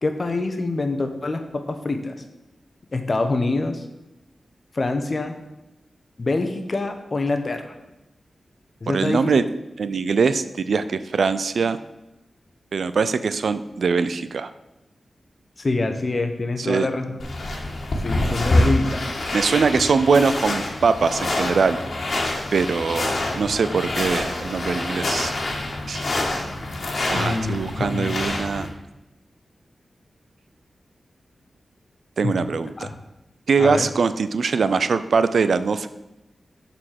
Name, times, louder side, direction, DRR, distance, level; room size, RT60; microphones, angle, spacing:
voice 1, 0.0-2.1 2.9-3.8 4.7-5.3 6.2-7.7 8.8-9.2 15.6-17.1 18.0-19.0 27.1-28.1 32.2-32.3 32.8-32.9 33.6-33.9, left 2 dB, 40° left, 6 dB, 1.0 m, -25 dB
voice 2, 8.9-9.4 9.8-11.8 12.7-14.5 16.6-16.9 19.3-21.8 22.5-25.3 25.9-26.1 27.1-28.7 32.2-32.9 33.5-35.9, right 5 dB, 75° right, 13 dB, 0.4 m, -22 dB
sound 1, 17.2-28.7, left 2 dB, 60° left, 1.6 m, -26 dB
7.3 x 4.3 x 6.5 m, 0.97 s
wide cardioid pair, 85°, 0 cm